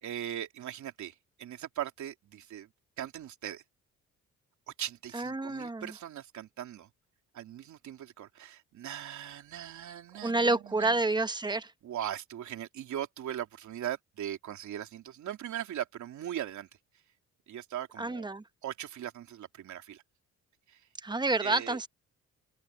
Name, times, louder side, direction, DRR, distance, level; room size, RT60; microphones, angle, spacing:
voice 1, 0.0-2.7 3.0-3.6 4.8-6.9 7.3-11.0 11.8-16.7 17.5-18.3 18.6-20.0 20.7-20.8 21.4-21.8, right 11 dB, 70° right, 3.3 m, -39 dB
voice 2, 5.1-5.9 10.2-11.7 18.0-18.4 21.0-21.9, right 2 dB, 15° right, 1.1 m, -29 dB
cardioid pair, 90°, 30 cm